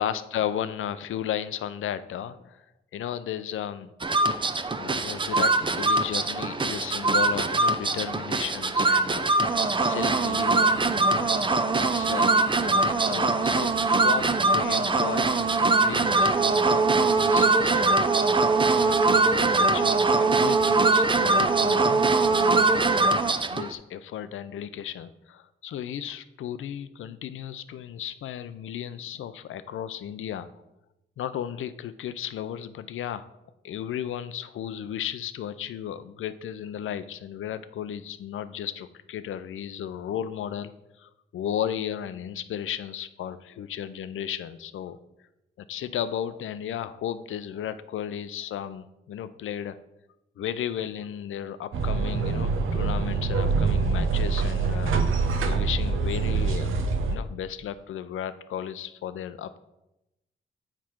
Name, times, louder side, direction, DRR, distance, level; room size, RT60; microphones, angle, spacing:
voice 1, 0.0-2.6 2.9-3.9 4.7-11.3 11.7-18.4 18.7-23.1 23.5-30.5 31.2-33.3 33.6-40.7 41.0-45.0 45.7-49.8 50.4-54.9 55.4-59.6, left 10 dB, 80° left, 13 dB, 0.5 m, -34 dB
sound 1, 4.0-23.7, right 3 dB, 25° right, 0.5 m, -22 dB
sound 2, 51.7-57.2, right 4 dB, 80° right, 0.7 m, -25 dB
7.4 x 4.9 x 4.4 m, 0.92 s
cardioid pair, 60°, 21 cm